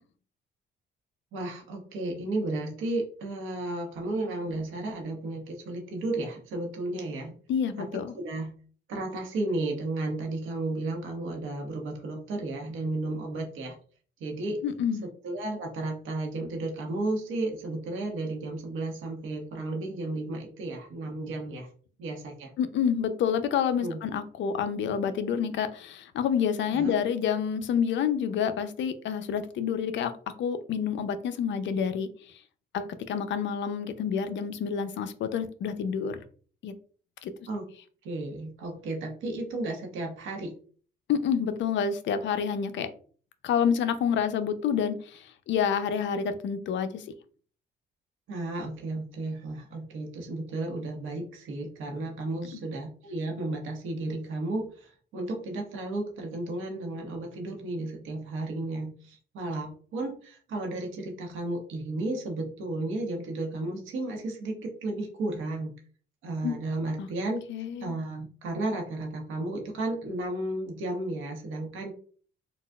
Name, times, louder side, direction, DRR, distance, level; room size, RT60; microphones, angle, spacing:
voice 1, 1.3-7.3 8.1-8.5 8.9-13.7 14.2-14.6 15.2-21.7 22.0-22.5 23.8-24.0 26.7-26.9 37.5-37.7 38.0-40.5 48.3-65.7 66.2-67.4 67.8-71.9, right 2 dB, 85° right, 1 dB, 1.1 m, -33 dB
voice 2, 7.5-8.1 14.6-15.0 22.6-30.1 30.4-32.1 32.7-36.2 36.6-36.7 37.2-37.3 41.1-42.9 43.4-47.0 66.4-66.6 67.0-67.1 67.5-67.9, left 7 dB, 70° left, 10 dB, 0.5 m, -28 dB
3.9 x 2.4 x 2.3 m, 0.43 s
cardioid pair, 90°, 20 cm